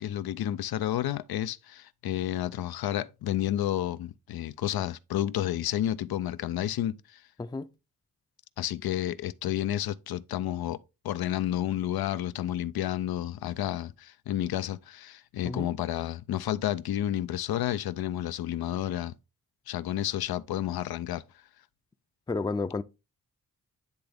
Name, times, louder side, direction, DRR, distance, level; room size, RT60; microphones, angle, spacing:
voice 1, 0.0-7.2 8.6-10.8 11.0-19.1 19.7-21.2, left 12 dB, 85° left, 0.5 m, -31 dB
voice 2, 22.3-22.8, left 3 dB, 10° left, 0.4 m, -31 dB
9.9 x 3.4 x 3.5 m
cardioid pair, 55°, 36 cm